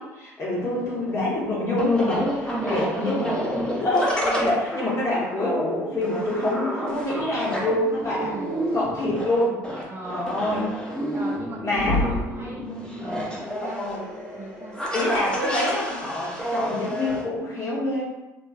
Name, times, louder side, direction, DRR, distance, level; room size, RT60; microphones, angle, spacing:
voice 1, 0.0-3.3 3.8-8.3 8.7-9.6 10.1-10.7 11.6-12.1 12.7-12.8 13.7-14.0 14.9-18.0, left 1 dB, 35° left, -6 dB, 1.4 m, -26 dB
voice 2, 0.5-0.9 2.5-3.5 8.2-8.8 9.9-10.4 11.1-12.7 13.0-14.0 14.3-14.8, right 2 dB, 30° right, -3 dB, 0.7 m, -37 dB
sound 1, 0.6-17.2, equal, 10° left, 0.9 m, -30 dB
sound 2, 11.3-11.5 11.7-12.4 14.1-14.2 16.1-16.2 17.1-17.2, left 2 dB, 60° left, 1.4 m, -27 dB
3.0 x 2.7 x 2.4 m, 1.0 s
hypercardioid pair, 65°, 8 cm